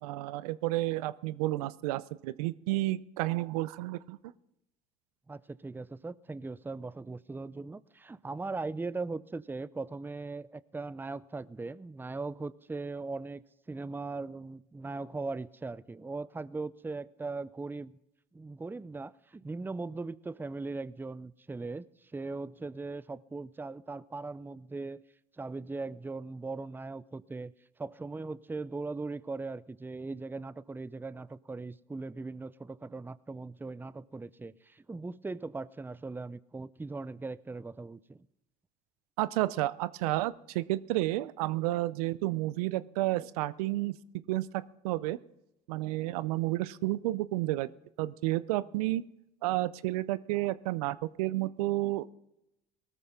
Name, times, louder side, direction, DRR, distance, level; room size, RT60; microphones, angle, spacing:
voice 1, 0.0-4.2 39.2-44.0 44.3-44.5 44.8-45.2 45.7-47.7 48.0-49.0 49.4-52.1, right 17 dB, 85° right, 18 dB, 0.5 m, -31 dB
voice 2, 5.3-18.0 18.3-25.0 25.4-27.5 27.8-38.3, right 3 dB, 10° right, 18 dB, 0.5 m, -39 dB
18.0 x 13.5 x 3.7 m, 0.85 s
supercardioid pair, 75°, 19 cm